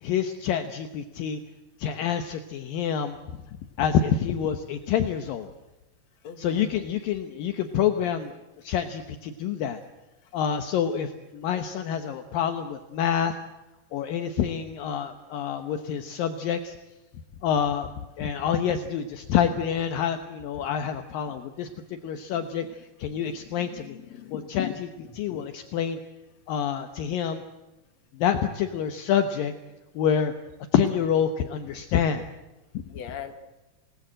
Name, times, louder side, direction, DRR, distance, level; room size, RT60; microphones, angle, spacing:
voice 1, 0.0-1.4 1.8-3.2 3.8-5.5 6.4-8.3 8.6-9.8 10.3-13.3 13.9-16.8 17.4-17.9 18.2-24.0 24.3-26.0 26.5-27.4 28.1-29.5 30.0-30.3 30.7-32.2, left 8 dB, 70° left, 7 dB, 2.7 m, -27 dB
voice 2, 6.2-6.7 23.8-24.5 32.9-33.3, left 8 dB, 50° left, 6 dB, 2.9 m, -40 dB
28.0 x 19.0 x 7.8 m, 1.0 s
omnidirectional pair, 4.4 m